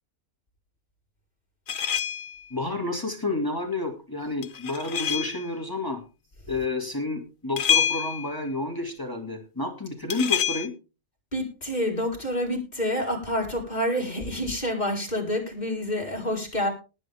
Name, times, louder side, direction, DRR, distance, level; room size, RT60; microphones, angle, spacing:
sound 1, 1.7-2.4 4.4-5.5 7.6-8.4 10.1-10.7, left 8 dB, 85° left, 1.4 m, -26 dB
voice 1, 2.5-6.0 6.5-10.7, left 2 dB, 15° left, 3 dB, 2.7 m, -30 dB
voice 2, 11.3-16.7, equal, 30° left, 0 dB, 4.9 m, -28 dB
19.0 x 9.0 x 3.6 m, 0.32 s
omnidirectional pair, 1.4 m